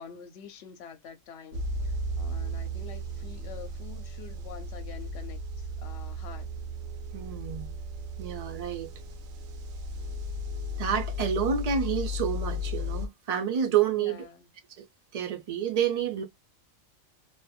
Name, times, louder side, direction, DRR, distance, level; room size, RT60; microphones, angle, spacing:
voice 1, 0.0-6.5 13.9-14.5, left 7 dB, 60° left, 0.9 m, -46 dB
sound 1, 1.5-13.1, left 1 dB, 85° right, 1.0 m, -35 dB
voice 2, 7.1-7.7 8.2-8.9 10.8-14.2 14.8-14.9 15.1-16.2, right 8 dB, 60° right, 0.4 m, -29 dB
2.6 x 2.5 x 2.2 m
omnidirectional pair, 1.4 m